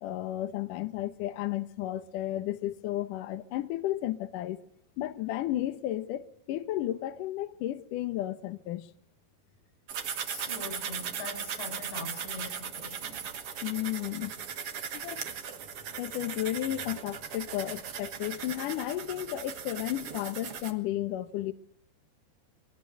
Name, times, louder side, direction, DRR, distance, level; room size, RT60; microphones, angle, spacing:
voice 1, 0.0-4.6 5.0-8.9 13.6-14.4 14.9-15.2 16.0-21.5, left 14 dB, 70° left, 2.1 m, -33 dB
sound 1, 9.9-20.7, right 7 dB, 65° right, 1.4 m, -38 dB
voice 2, 10.3-13.3, left 3 dB, 85° left, 8.9 m, -42 dB
22.5 x 19.0 x 7.9 m
omnidirectional pair, 5.0 m